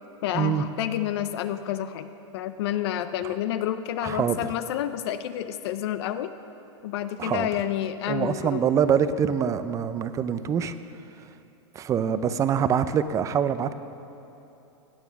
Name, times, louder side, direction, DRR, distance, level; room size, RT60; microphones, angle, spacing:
voice 1, 0.2-2.1 2.3-6.3 6.8-8.6, left 11 dB, 60° left, 10 dB, 0.6 m, -29 dB
voice 2, 4.0-4.4 7.2-7.5 8.1-10.8 11.7-13.7, right 8 dB, 20° right, 12 dB, 0.5 m, -24 dB
17.5 x 9.2 x 6.0 m, 2.9 s
hypercardioid pair, 135°, 16 cm